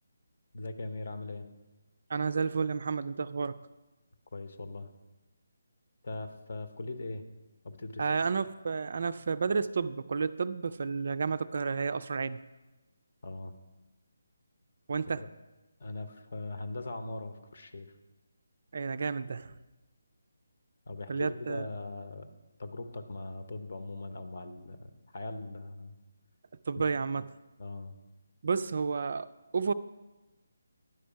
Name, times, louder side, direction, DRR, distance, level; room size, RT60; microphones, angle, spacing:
voice 1, 0.5-1.5 4.3-4.9 6.0-7.2 7.6-8.2 13.2-13.5 15.2-15.3 15.8-17.9 20.9-22.3 22.6-26.0 26.8-26.9 27.6-27.9, left 2 dB, 50° left, 8 dB, 0.8 m, -40 dB
voice 2, 2.1-3.6 8.0-12.5 14.9-15.3 18.7-19.5 21.1-21.7 26.7-27.3 28.4-29.3 29.5-29.7, right 5 dB, 50° right, 14 dB, 0.3 m, -31 dB
11.0 x 5.1 x 5.7 m, 1.1 s
figure-of-eight pair, 150°, 0 cm